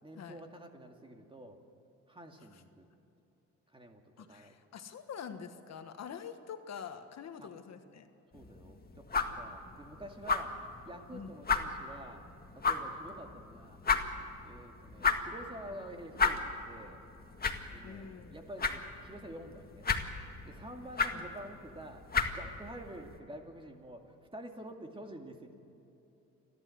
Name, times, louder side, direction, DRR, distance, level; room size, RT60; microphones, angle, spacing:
voice 1, 0.0-1.6 2.1-2.9 3.7-4.5 7.4-7.5 8.3-12.2 12.5-13.8 14.4-17.0 17.7-19.9 20.5-25.5, right 1 dB, 15° right, 4 dB, 2.4 m, -48 dB
voice 2, 4.2-8.1 11.1-11.3 17.8-18.4 21.1-21.3, left 7 dB, 60° left, 8 dB, 1.4 m, -45 dB
sound 1, 8.3-23.2, left 5 dB, 30° left, 1.8 m, -36 dB
29.5 x 12.0 x 7.9 m, 3.0 s
cardioid pair, 90°, 30 cm